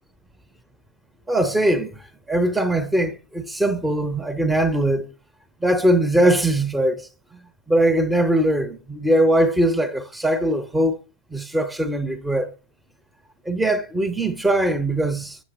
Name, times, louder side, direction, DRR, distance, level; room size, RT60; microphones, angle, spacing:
voice 1, 1.3-2.0 2.3-5.1 5.6-7.4 7.7-11.0 11.3-12.5 13.5-15.4, right 1 dB, 5° right, 0.6 m, -21 dB
7.3 x 7.1 x 4.0 m
figure-of-eight pair, 90°, 0 cm